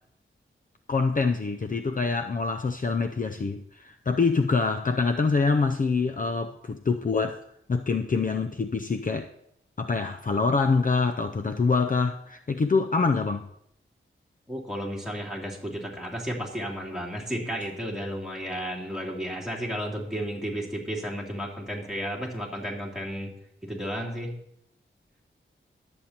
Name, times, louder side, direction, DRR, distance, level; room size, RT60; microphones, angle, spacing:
voice 1, 0.9-7.4 7.7-9.3 9.8-13.5, left 4 dB, 40° left, 7 dB, 0.5 m, -25 dB
voice 2, 14.5-23.3 23.6-24.3, equal, ahead, -3 dB, 3.0 m, -33 dB
21.5 x 8.0 x 2.9 m, 0.75 s
wide cardioid pair, 80°, 21 cm